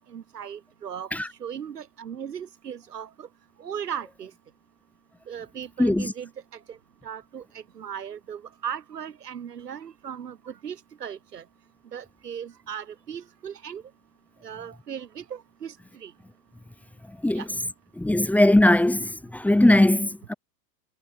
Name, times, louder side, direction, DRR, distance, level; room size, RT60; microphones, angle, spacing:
voice 1, 0.1-1.1 1.4-3.3 3.6-4.3 5.3-6.3 6.7-6.8 7.0-11.4 11.9-13.8 14.4-16.1 17.3-17.5, right 8 dB, 70° right, 4.1 m, -37 dB
voice 2, 5.8-6.1 17.2-17.4 18.0-20.3, left 1 dB, 5° left, 1.5 m, -20 dB
figure-of-eight pair, 105°, 50 cm